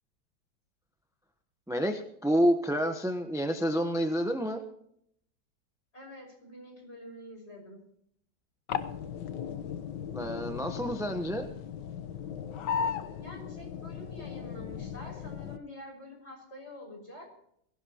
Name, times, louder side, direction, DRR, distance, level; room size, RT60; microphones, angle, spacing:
voice 1, 1.7-4.6 10.1-11.5, equal, ahead, 5 dB, 0.8 m, -29 dB
voice 2, 5.9-7.8 13.1-17.3, left 1 dB, 35° left, 1 dB, 6.2 m, -47 dB
sound 1, 8.7-15.6, left 7 dB, 80° left, 1.5 m, -36 dB
23.0 x 16.0 x 3.0 m, 0.71 s
omnidirectional pair, 1.9 m